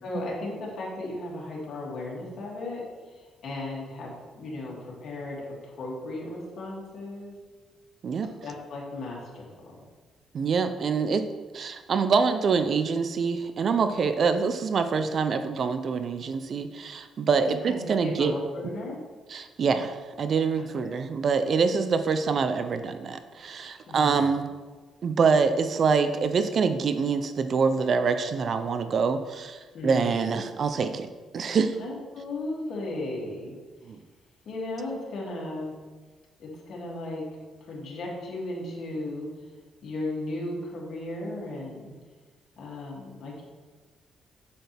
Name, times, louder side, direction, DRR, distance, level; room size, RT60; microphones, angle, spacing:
voice 1, 0.0-2.8 3.4-4.8 5.0-7.3 8.4-9.7 17.4-19.0 20.6-20.7 23.9-24.4 29.7-30.5 31.8-33.5 34.5-35.7 36.4-37.3 37.6-39.3 39.8-41.9 42.6-43.4, left 2 dB, 65° left, -4 dB, 2.6 m, -35 dB
voice 2, 10.3-11.3 11.5-18.3 19.3-24.5 25.0-31.1 31.3-31.7 33.9-34.0, right 5 dB, 55° right, 9 dB, 0.6 m, -25 dB
7.7 x 6.9 x 3.5 m, 1.4 s
cardioid pair, 90°, 0 cm